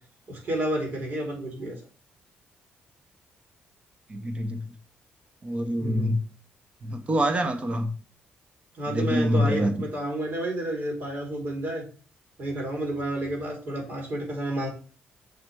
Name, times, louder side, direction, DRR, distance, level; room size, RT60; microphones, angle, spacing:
voice 1, 0.3-1.8 5.8-6.2 8.7-11.8 12.4-14.7, right 1 dB, 60° right, 2.9 m, -30 dB
voice 2, 4.1-4.6 5.4-6.2 6.8-7.9 8.9-9.9, equal, 30° right, 1.0 m, -25 dB
6.5 x 3.2 x 4.6 m
cardioid pair, 95°, 4 cm